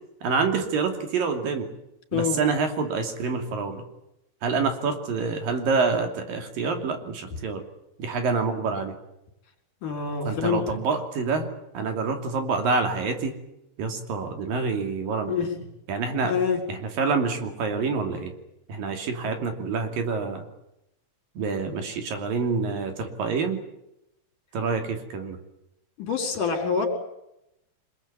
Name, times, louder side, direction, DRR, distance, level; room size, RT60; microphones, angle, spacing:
voice 1, 0.2-1.7 2.1-3.8 4.4-7.6 8.0-8.9 10.3-11.5 11.7-13.3 13.8-15.3 15.9-16.3 16.7-18.3 18.7-20.4 21.4-23.6 24.5-25.4, right 4 dB, 90° right, 5 dB, 4.6 m, -27 dB
voice 2, 9.8-10.8 15.3-15.6 16.2-16.6 26.0-26.9, left 6 dB, 65° left, 4 dB, 5.8 m, -26 dB
26.0 x 21.0 x 8.7 m, 0.84 s
omnidirectional pair, 3.9 m